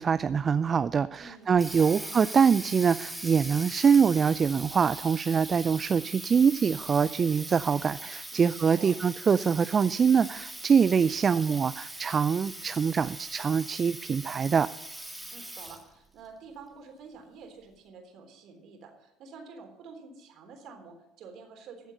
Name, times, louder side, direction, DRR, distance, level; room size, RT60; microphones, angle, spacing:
voice 1, 0.0-14.7, right 6 dB, 35° right, 15 dB, 0.4 m, -24 dB
voice 2, 1.2-2.1 8.3-8.9 15.3-21.9, right 5 dB, 55° right, 4 dB, 3.6 m, -48 dB
Water tap faucet, 1.3-16.0, right 1 dB, 5° right, 2.2 m, -41 dB
15.0 x 8.1 x 6.6 m, 0.91 s
hypercardioid pair, 65°, 0 cm